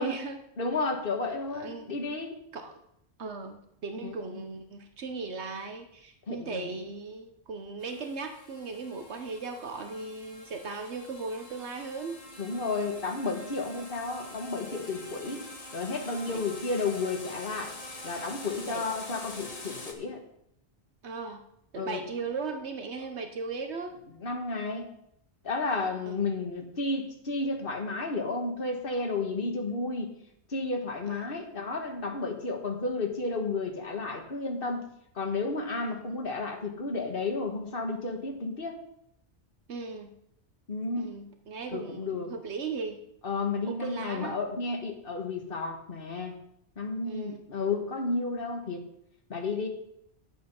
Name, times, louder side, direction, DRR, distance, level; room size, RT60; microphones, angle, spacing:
voice 1, 0.0-0.4 1.5-1.9 2.5-2.8 3.2-12.2 16.3-16.4 18.6-18.8 21.0-21.4 21.7-24.0 26.1-26.2 31.0-31.3 35.8-36.1 39.7-40.1 41.0-43.0 43.7-44.4 47.1-47.4, right 4 dB, 75° right, 6 dB, 1.2 m, -37 dB
voice 2, 0.6-2.3 4.0-4.1 6.3-6.7 12.4-15.4 15.7-17.7 18.0-20.2 21.7-22.0 24.2-24.9 25.4-30.1 30.5-34.8 35.1-38.8 40.7-41.1 41.7-42.3 43.2-46.4 46.8-48.8 49.3-49.7, left 3 dB, 50° left, 3 dB, 1.7 m, -32 dB
sound 1, 7.8-19.9, left 2 dB, 35° left, 1.4 m, -45 dB
10.0 x 7.8 x 5.5 m, 0.74 s
omnidirectional pair, 1.2 m